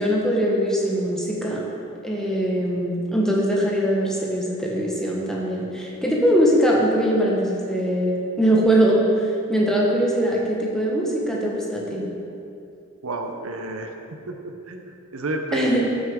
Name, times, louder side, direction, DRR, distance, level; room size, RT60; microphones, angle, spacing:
voice 1, 0.0-1.6 2.0-12.0 15.5-15.9, right 1 dB, 5° left, -4 dB, 1.2 m, -21 dB
voice 2, 13.0-13.9 14.3-15.9, right 1 dB, 80° right, 4 dB, 0.8 m, -30 dB
13.0 x 6.4 x 3.7 m, 2.6 s
head